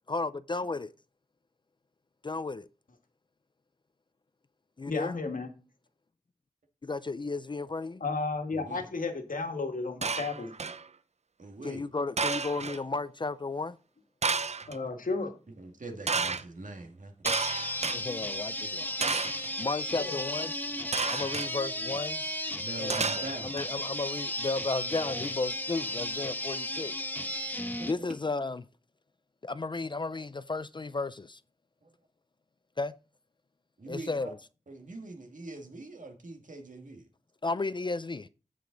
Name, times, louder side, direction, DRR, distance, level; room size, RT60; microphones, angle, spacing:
voice 1, 0.1-0.9 2.2-2.7 4.8-5.1 6.8-8.0 11.6-13.8 17.9-18.9 19.6-20.5 21.0-22.2 22.8-26.9 27.2-28.6 29.4-31.4 32.8-32.9 33.9-34.4 37.4-38.3, left 3 dB, 35° left, 0.4 m, -34 dB
voice 2, 4.9-5.5 8.0-10.5 14.7-15.3 20.0-20.2, left 3 dB, 80° left, 1.7 m, -33 dB
voice 3, 8.5-8.9 11.4-11.8 15.6-17.1 22.6-23.6 31.8-31.9 33.8-34.3 34.7-37.1, right 2 dB, 70° right, 1.9 m, -43 dB
sound 1, 10.0-10.8 12.2-12.8 14.2-14.8 16.1-16.4 17.3-18.0 19.0-19.5 20.9-21.5 22.9-23.6, right 4 dB, 55° right, 0.6 m, -31 dB
sound 2, 17.2-27.9, left 1 dB, 15° left, 1.0 m, -35 dB
14.5 x 5.1 x 3.9 m
wide cardioid pair, 80°, 14 cm